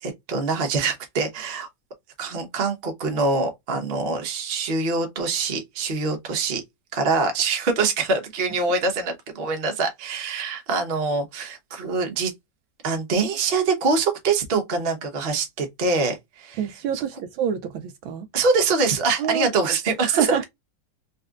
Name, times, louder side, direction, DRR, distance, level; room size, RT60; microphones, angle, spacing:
voice 1, 0.0-1.7 2.2-6.6 6.9-12.3 12.8-16.6 18.3-20.4, right 4 dB, 45° right, 0.7 m, -24 dB
voice 2, 16.6-18.3 19.2-19.5 20.0-20.4, right 9 dB, 75° right, 1.2 m, -26 dB
4.1 x 2.6 x 2.4 m
omnidirectional pair, 2.4 m